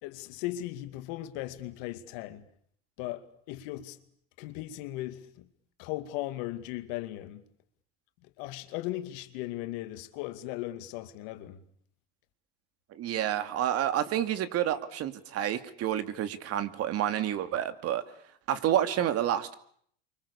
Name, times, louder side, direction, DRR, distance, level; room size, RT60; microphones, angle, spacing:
voice 1, 0.0-2.5 3.0-4.0 4.4-5.5 5.8-7.4 8.2-11.6, left 15 dB, 70° left, 2.4 m, -37 dB
voice 2, 12.9-18.0 18.5-19.5, right 11 dB, 50° right, 2.6 m, -29 dB
29.0 x 24.5 x 7.1 m
supercardioid pair, 95°, 30 cm